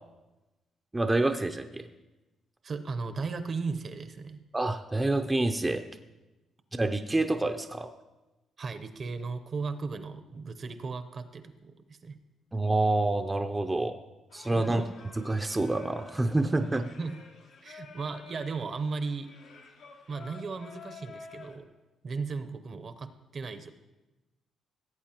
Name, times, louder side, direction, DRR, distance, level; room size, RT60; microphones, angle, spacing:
voice 1, 0.9-1.9 4.5-5.8 6.7-7.9 12.5-14.0 14.3-14.9 15.2-16.8, right 2 dB, 15° right, 6 dB, 0.5 m, -27 dB
voice 2, 2.6-4.4 8.6-12.2 14.5-14.9 16.7-17.2 17.6-19.3 20.1-21.7 22.0-23.7, right 4 dB, 45° right, 10 dB, 0.7 m, -36 dB
Singing, 14.3-21.5, left 4 dB, 85° left, 1.4 m, -51 dB
16.5 x 8.1 x 2.9 m, 1.1 s
cardioid pair, 90°, 0 cm